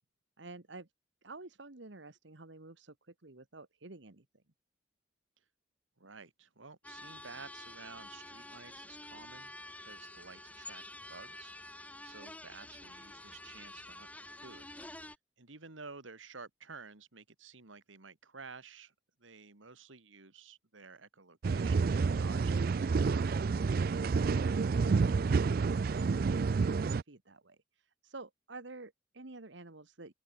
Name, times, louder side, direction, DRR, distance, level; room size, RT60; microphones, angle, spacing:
voice 1, 0.4-0.9 1.2-4.2 24.3-25.6 27.1-30.1, right 3 dB, 70° right, 1.6 m, -50 dB
voice 2, 6.0-9.5 9.8-10.8 11.1-14.7 15.0-18.9 19.2-23.3, right 4 dB, 85° right, 2.2 m, -52 dB
sound 1, 6.8-15.2, left 1 dB, 10° left, 4.1 m, -49 dB
sound 2, 21.4-27.0, right 4 dB, 50° right, 0.4 m, -29 dB
open air
head